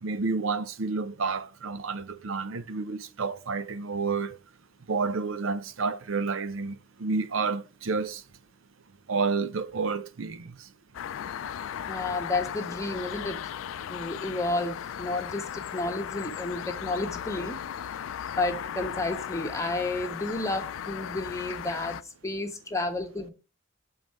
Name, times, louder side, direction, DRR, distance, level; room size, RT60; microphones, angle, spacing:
voice 1, 0.0-4.4 4.9-8.2 9.1-10.7, right 4 dB, 80° right, 0.6 m, -30 dB
sound 1, 10.9-22.0, left 9 dB, 80° left, 0.3 m, -36 dB
voice 2, 11.9-13.5 13.9-17.6 18.4-23.3, left 2 dB, 15° left, 1.1 m, -31 dB
7.1 x 3.9 x 4.5 m
head